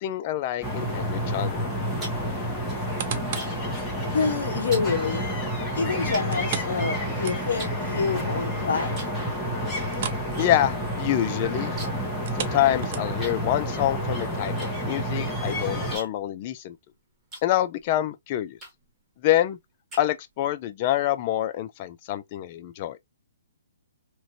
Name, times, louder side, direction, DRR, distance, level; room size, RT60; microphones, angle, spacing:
voice 1, 0.0-1.7 10.4-11.7 12.4-14.5 14.8-16.8 17.4-18.6 19.2-19.6 20.0-23.0, left 13 dB, 35° left, 0.4 m, -26 dB
sound 1, 0.6-16.0, equal, 10° left, 1.1 m, -29 dB
sound 2, 1.9-3.7 4.0-4.3 4.7-4.9 5.6-5.7 6.1-7.1 7.6-8.4 8.9-9.2 9.5-10.5 10.8-10.9 11.1-12.1 12.4-12.5 13.2-18.0 18.6-19.0 19.5-20.5, right 2 dB, 15° right, 1.4 m, -42 dB
sound 3, 2.7-3.6 4.1-4.2 6.3-7.8 8.1-8.2 8.6-8.7 9.9-10.3 10.6-10.8 12.1-13.4 14.0-14.1, right 8 dB, 45° right, 0.5 m, -36 dB
voice 2, 4.1-5.3 5.7-9.0, left 5 dB, 70° left, 0.8 m, -27 dB
3.0 x 2.5 x 2.7 m
hypercardioid pair, 150°, 0 cm